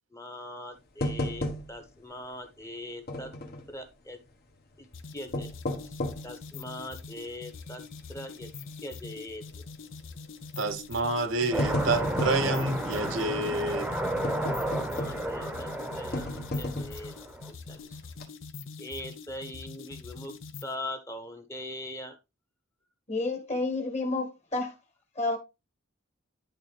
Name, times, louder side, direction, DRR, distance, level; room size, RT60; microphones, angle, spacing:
voice 1, 0.1-3.3 3.7-4.2 4.8-4.9 5.1-5.5 5.8-6.0 6.2-7.8 8.1-8.5 8.8-9.6 14.9-17.1 17.5-18.0 18.8-20.4 20.6-22.2, left 1 dB, 15° left, 1.1 m, -41 dB
sound 1, 1.0-2.0 2.3-2.4 3.1-3.7 5.1-6.3 6.9-7.0 7.6-7.9 8.2-8.3 9.4-9.7 10.6-10.8 11.2-12.5 14.2-15.4 16.1-17.1 17.6-17.8 18.1-18.2, left 1 dB, 50° left, 1.3 m, -33 dB
sound 2, 4.9-20.8, left 4 dB, 65° left, 0.8 m, -44 dB
voice 2, 10.6-13.9, right 2 dB, 65° right, 0.9 m, -28 dB
sound 3, 11.5-17.5, right 1 dB, 5° right, 0.9 m, -32 dB
voice 3, 23.1-24.7 25.2-25.4, left 2 dB, 35° left, 1.7 m, -30 dB
11.0 x 3.8 x 3.3 m
head